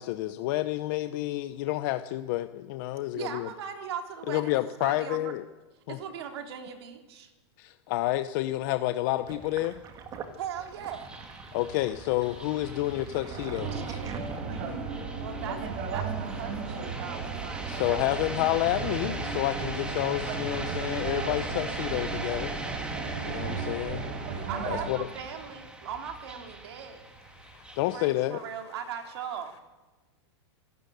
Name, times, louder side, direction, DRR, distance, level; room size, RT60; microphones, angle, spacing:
voice 1, 0.0-3.5 4.3-5.4 5.9-6.0 7.6-9.8 11.5-14.0 17.7-22.6 23.2-24.1 24.7-25.1 27.8-28.4, left 16 dB, 45° left, 0.8 m, -29 dB
voice 2, 3.1-5.3 5.9-7.3 10.3-11.1 13.7-13.8 15.2-18.0 24.5-27.0 27.9-29.5, right 8 dB, 65° right, 3.3 m, -39 dB
sound 1, 9.0-28.0, right 1 dB, 5° right, 2.0 m, -40 dB
Sink (filling or washing), 9.3-14.8, right 6 dB, 25° right, 2.1 m, -44 dB
sound 2, 13.3-24.9, right 5 dB, 40° right, 4.1 m, -35 dB
voice 3, 27.2-29.6, left 9 dB, 70° left, 4.5 m, -57 dB
26.0 x 12.5 x 9.3 m
supercardioid pair, 155°, 14 cm